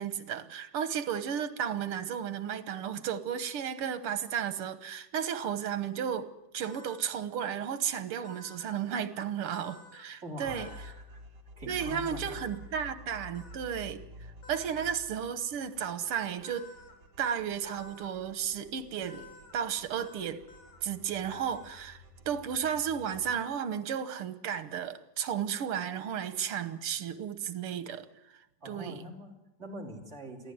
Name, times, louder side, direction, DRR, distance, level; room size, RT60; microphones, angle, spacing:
voice 1, 0.0-6.3 6.5-10.7 11.7-16.7 17.2-19.3 19.5-20.4 20.8-22.0 22.3-28.1 28.7-29.0, right 8 dB, 90° right, 2.1 m, -33 dB
sound 1, 5.1-5.5 6.6-7.1 8.2-8.8 9.5-10.0 10.5-10.9 11.8-12.6 13.3-13.6 14.4-14.9 16.4-16.9 17.6-18.1 19.1-19.5 20.0-20.2 20.5-20.8 21.3-21.8, left 3 dB, 85° left, 3.9 m, -52 dB
voice 2, 10.2-11.2 11.6-12.4 12.7-12.8 28.6-30.5, equal, 30° right, 3.7 m, -44 dB
sound 2, 10.4-23.3, left 1 dB, 50° right, 3.1 m, -51 dB
23.0 x 15.0 x 9.4 m
omnidirectional pair, 2.4 m